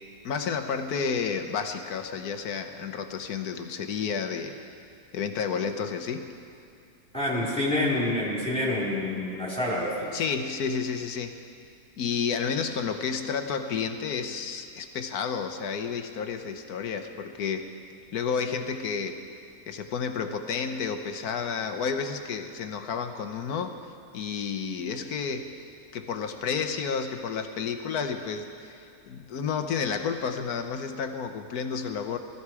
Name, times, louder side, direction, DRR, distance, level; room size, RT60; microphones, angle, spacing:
voice 1, 0.2-4.6 5.1-6.3 10.1-11.4 12.0-17.7 18.1-19.2 19.7-23.8 24.1-25.6 25.9-32.2, left 6 dB, 70° left, 7 dB, 1.4 m, -31 dB
voice 2, 7.1-10.2, left 1 dB, 5° left, -6 dB, 4.1 m, -27 dB
20.0 x 14.0 x 4.8 m, 2.4 s
omnidirectional pair, 1.7 m